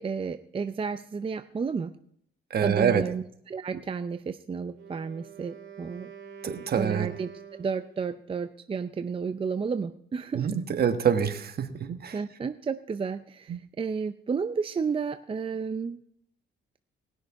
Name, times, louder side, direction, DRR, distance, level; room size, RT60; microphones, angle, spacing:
voice 1, 0.0-1.9 2.6-6.1 6.5-7.3 7.6-10.5 12.1-16.0, right 5 dB, 25° right, 10 dB, 0.5 m, -32 dB
voice 2, 2.5-3.0 6.4-7.1 10.3-12.2 13.5-13.6, right 7 dB, 50° right, 8 dB, 1.3 m, -26 dB
Wind instrument woodwind instrument, 4.7-8.2, right 7 dB, 80° right, 1.9 m, -46 dB
19.5 x 6.5 x 4.7 m, 0.68 s
cardioid pair, 90°, 20 cm